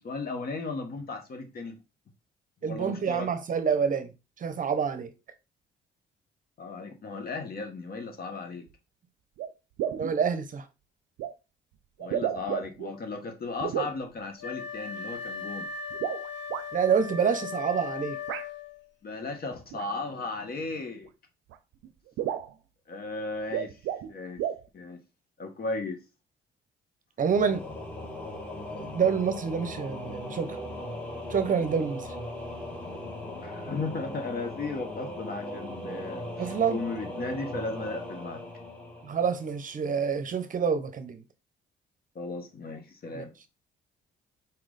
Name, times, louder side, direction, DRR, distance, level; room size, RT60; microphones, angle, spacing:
voice 1, 0.0-1.8 2.6-3.3 6.6-8.7 12.0-15.7 19.0-21.1 22.9-23.8 24.1-24.4 24.7-25.0 25.4-26.0 33.4-38.4 42.1-43.3, left 3 dB, 50° left, 1.3 m, -35 dB
voice 2, 2.6-4.1 4.4-5.1 10.0-10.6 16.7-18.2 27.2-27.6 28.8-30.6 31.3-32.1 36.4-36.8 39.0-41.2 43.1-43.3, right 6 dB, 40° right, 0.7 m, -27 dB
sound 1, 8.7-8.8 9.4-9.5 9.8-10.2 11.2-11.3 12.0-12.9 13.6-13.9 15.9-16.6 18.3-18.5 19.7-19.9 21.1-21.2 21.5-21.6 21.8-21.9 22.2-22.5 23.4-24.1 24.4-24.6, right 10 dB, 90° right, 0.5 m, -32 dB
Wind instrument woodwind instrument, 14.4-18.8, left 6 dB, 65° left, 0.8 m, -38 dB
Singing / Musical instrument, 27.3-39.8, left 1 dB, 5° left, 1.2 m, -39 dB
4.4 x 3.1 x 3.9 m
cardioid pair, 90°, 20 cm